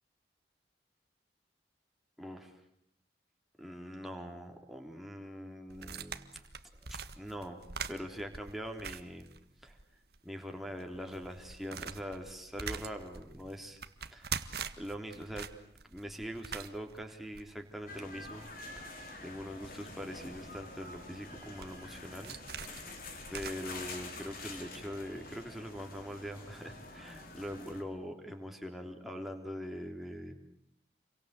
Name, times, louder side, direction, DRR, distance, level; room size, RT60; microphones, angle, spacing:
voice 1, 2.2-2.5 3.6-6.4 6.9-7.6 7.9-9.3 9.6-9.8 10.2-13.8 14.1-14.5 14.8-15.5 15.9-22.4 22.7-22.9 23.3-30.4, equal, ahead, 2 dB, 3.6 m, -43 dB
sound 1, 5.7-9.8 10.1-10.2 10.7-23.5, right 6 dB, 60° right, 1.7 m, -44 dB
sound 2, 17.9-27.8, left 2 dB, 50° left, 5.0 m, -47 dB
29.5 x 23.5 x 8.4 m, 0.78 s
head